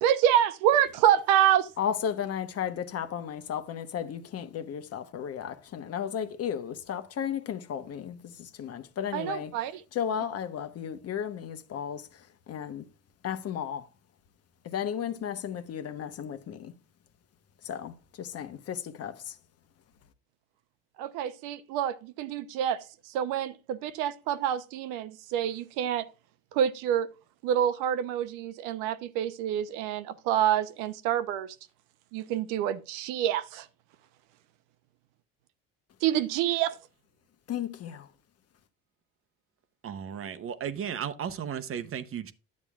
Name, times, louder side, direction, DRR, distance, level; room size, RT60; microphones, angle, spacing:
voice 1, 0.0-1.7 9.1-9.8 21.0-22.8 23.1-26.0 26.5-27.1 27.4-31.5 32.1-33.7 36.0-36.7, right 10 dB, 80° right, 0.8 m, -27 dB
voice 2, 1.8-9.5 9.9-12.1 12.5-12.8 13.2-13.9 14.6-16.7 17.6-19.3 37.5-38.1, left 8 dB, 50° left, 1.1 m, -34 dB
voice 3, 39.8-42.3, right 8 dB, 45° right, 0.9 m, -35 dB
10.5 x 8.5 x 2.4 m
supercardioid pair, 85°, 32 cm